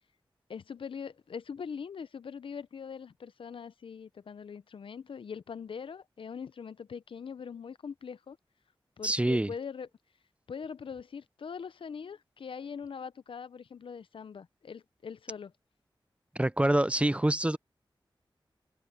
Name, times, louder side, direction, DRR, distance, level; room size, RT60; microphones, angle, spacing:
voice 1, 0.5-8.4 9.0-9.9 10.5-15.5, left 6 dB, 80° left, 0.5 m, -42 dB
voice 2, 9.0-9.5 16.4-17.6, right 1 dB, 15° right, 0.5 m, -26 dB
wide cardioid pair, 75°, 9 cm